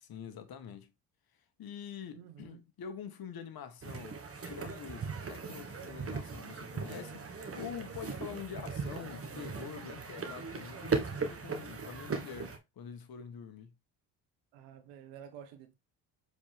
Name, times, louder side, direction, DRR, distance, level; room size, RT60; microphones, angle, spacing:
voice 1, 0.0-0.9 1.6-13.7, left 8 dB, 50° left, 1.7 m, -46 dB
voice 2, 2.1-2.6 14.5-15.7, right 9 dB, 75° right, 1.4 m, -50 dB
sound 1, 3.8-12.6, right 4 dB, 30° right, 1.5 m, -38 dB
7.0 x 4.8 x 3.5 m
hypercardioid pair, 65°, 46 cm